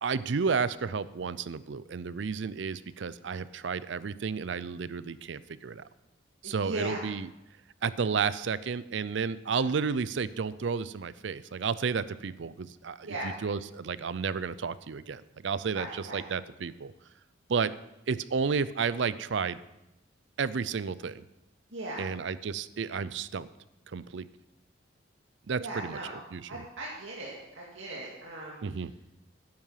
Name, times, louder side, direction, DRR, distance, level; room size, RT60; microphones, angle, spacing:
voice 1, 0.0-5.8 6.4-7.3 7.8-13.1 13.4-15.9 16.1-16.9 17.5-17.7 18.1-19.6 20.4-21.2 22.0-23.5 23.9-24.3 25.5-26.0 26.3-26.4 28.6-28.9, right 5 dB, 65° right, 17 dB, 0.5 m, -31 dB
voice 2, 6.4-7.0 9.5-9.7 13.0-13.3 15.7-16.2 21.7-22.1 25.6-26.2 26.5-28.9, right 1 dB, 80° right, -4 dB, 2.1 m, -38 dB
10.5 x 9.6 x 5.7 m, 0.91 s
head